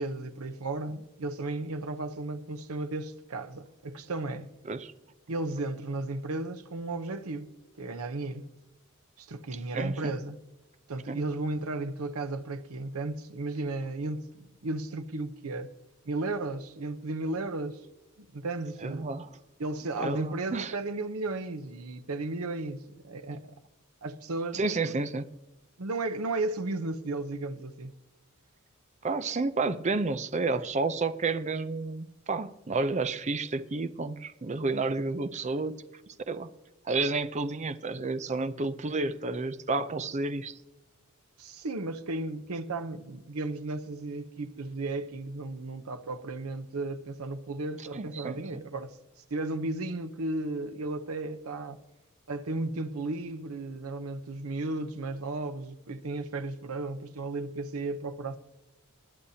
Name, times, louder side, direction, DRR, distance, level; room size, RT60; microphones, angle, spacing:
voice 1, 0.0-4.5 5.3-7.5 7.8-8.5 9.2-10.4 10.9-15.7 16.0-17.8 18.2-19.1 19.6-23.5 24.0-24.9 25.8-27.9 41.4-49.0 49.3-51.8 52.3-58.4, right 2 dB, 85° right, 0.8 m, -34 dB
voice 2, 9.7-10.1 11.1-11.2 18.8-19.3 20.0-20.7 24.5-25.3 29.0-35.8 36.3-36.5 36.8-40.6 47.9-48.4, right 3 dB, 30° right, 0.5 m, -30 dB
20.0 x 10.0 x 2.8 m
head